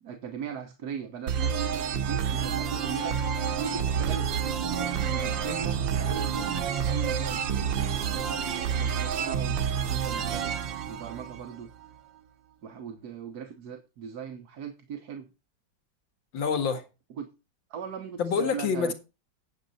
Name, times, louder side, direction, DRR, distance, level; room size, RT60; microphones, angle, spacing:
voice 1, 0.0-3.2 3.6-7.4 8.1-9.6 9.9-10.6 10.9-11.7 12.6-15.3 17.2-17.3 17.7-18.9, right 7 dB, 60° right, 1.4 m, -38 dB
sound 1, 1.3-11.9, right 7 dB, 85° right, 1.6 m, -29 dB
voice 2, 16.3-16.8 18.2-18.9, left 6 dB, 90° left, 2.3 m, -27 dB
9.4 x 7.9 x 4.1 m
omnidirectional pair, 2.0 m